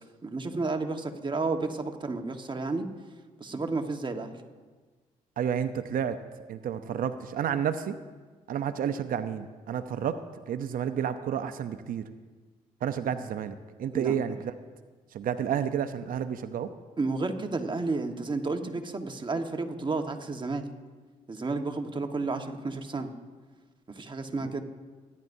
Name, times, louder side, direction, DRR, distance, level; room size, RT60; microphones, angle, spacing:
voice 1, 0.0-2.9 3.4-4.3 13.9-14.1 17.0-20.6 21.3-23.1 23.9-24.6, right 3 dB, 30° right, 5 dB, 1.4 m, -31 dB
voice 2, 5.4-6.2 6.5-8.0 8.5-10.2 10.5-12.0 12.8-14.5 15.1-16.7, right 8 dB, 70° right, 10 dB, 0.7 m, -30 dB
27.5 x 11.0 x 2.7 m, 1.4 s
supercardioid pair, 65°, 15 cm